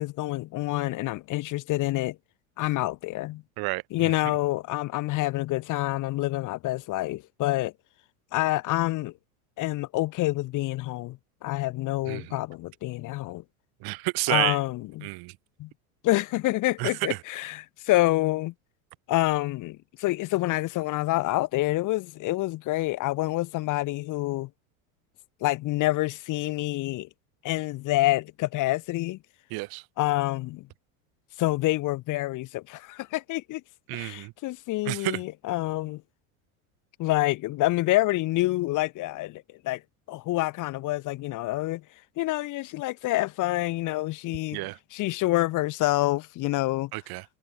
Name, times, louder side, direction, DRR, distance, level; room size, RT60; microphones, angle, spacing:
voice 1, 0.0-2.2 2.6-3.4 3.9-7.7 8.3-9.1 9.6-13.4 14.3-15.1 15.6-15.7 16.0-18.5 19.1-24.5 25.4-27.1 27.4-29.2 30.0-30.7 31.4-33.6 33.9-36.0 37.0-39.8 40.1-41.8 42.2-46.9, left 18 dB, 45° left, 1.0 m, -27 dB
voice 2, 13.8-14.6 15.0-15.3 16.8-16.9 29.5-29.8 33.9-34.3 34.9-35.2 44.5-44.8 46.9-47.2, right 25 dB, 60° right, 3.5 m, -29 dB
hypercardioid pair, 90°, 41 cm